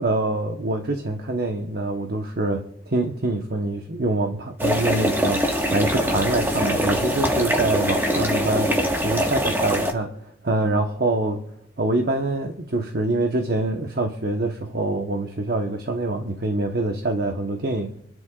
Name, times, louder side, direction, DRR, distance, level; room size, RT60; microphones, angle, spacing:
voice 1, 0.0-8.7 9.0-10.2 10.4-11.5 11.8-17.9, right 2 dB, 55° right, 4 dB, 1.1 m, -25 dB
sound 1, 4.6-9.9, equal, 10° right, 1.5 m, -23 dB
28.0 x 10.5 x 2.4 m, 0.72 s
head